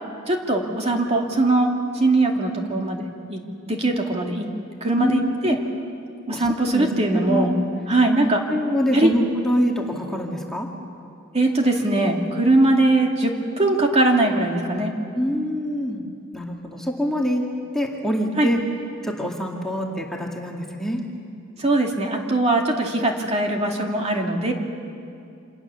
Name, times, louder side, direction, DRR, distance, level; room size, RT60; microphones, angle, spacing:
voice 1, 0.3-3.4 3.7-4.5 4.8-5.6 6.3-7.5 7.9-8.4 8.9-9.1 11.3-14.9 18.4-18.5 21.6-24.5, right 2 dB, 30° right, 1 dB, 2.4 m, -21 dB
voice 2, 5.0-5.6 6.3-7.5 8.5-10.7 15.1-16.0 16.3-17.5 17.7-18.6 19.0-21.0, equal, ahead, -1 dB, 2.0 m, -25 dB
28.0 x 26.5 x 7.0 m, 2.5 s
head